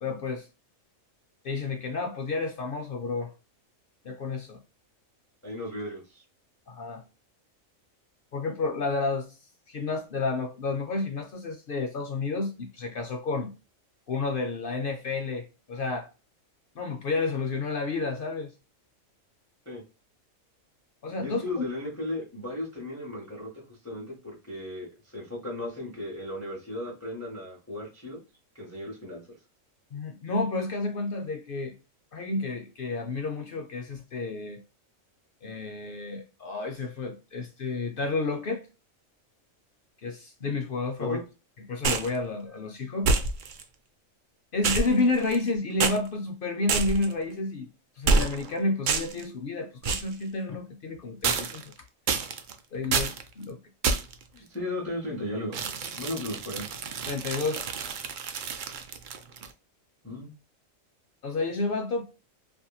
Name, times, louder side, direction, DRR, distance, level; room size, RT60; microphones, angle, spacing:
voice 1, 0.0-0.5 1.4-3.3 4.0-4.6 6.7-7.0 8.3-9.3 9.7-13.5 14.1-16.1 16.8-18.5 21.0-21.6 29.9-31.7 32.1-34.6 35.4-38.6 40.0-41.2 41.7-43.1 44.5-47.7 48.0-51.7 52.7-53.6 57.1-57.6 61.2-62.0, left 3 dB, 65° left, 0.5 m, -30 dB
voice 2, 5.4-6.2 19.7-19.8 21.2-28.2 28.5-29.2 41.0-41.2 54.3-55.7 55.9-56.7 60.0-60.3, left 1 dB, 15° left, 0.8 m, -36 dB
sound 1, 41.8-42.2 43.0-43.6 44.6-45.5 45.8-46.0 46.7-47.1 48.1-48.5 48.9-49.2 49.8-50.1 51.2-51.7 52.1-52.5 52.9-53.2 53.8-54.2 55.5-59.5, right 4 dB, 85° right, 0.4 m, -28 dB
2.8 x 2.6 x 2.2 m
omnidirectional pair, 1.4 m